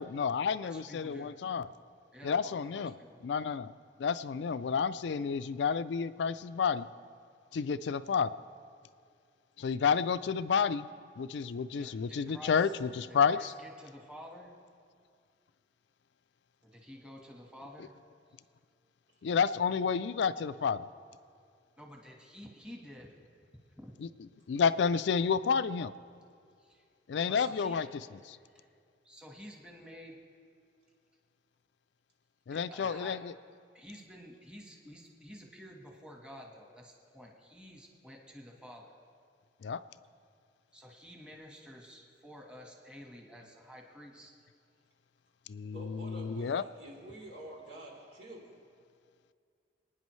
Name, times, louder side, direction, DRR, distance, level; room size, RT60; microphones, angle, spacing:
voice 1, 0.0-1.7 2.2-2.9 3.2-3.7 4.0-6.9 7.5-8.3 9.6-10.9 11.2-13.5 19.2-20.9 24.0-24.1 24.5-25.9 27.1-27.9 32.5-33.3 39.6-39.8 45.5-46.6, left 6 dB, 70° left, 14 dB, 0.4 m, -30 dB
voice 2, 0.6-1.3 2.1-3.2 11.7-12.6 13.1-14.5 16.6-17.9 21.8-23.2 23.8-23.9 26.6-26.8 27.3-27.8 28.5-28.7 29.0-30.2 32.5-33.2 33.7-38.9 40.7-44.3, equal, 5° right, 0 dB, 1.4 m, -50 dB
voice 3, 45.7-48.6, right 1 dB, 85° right, -4 dB, 3.6 m, -48 dB
26.5 x 9.7 x 3.2 m, 2.3 s
head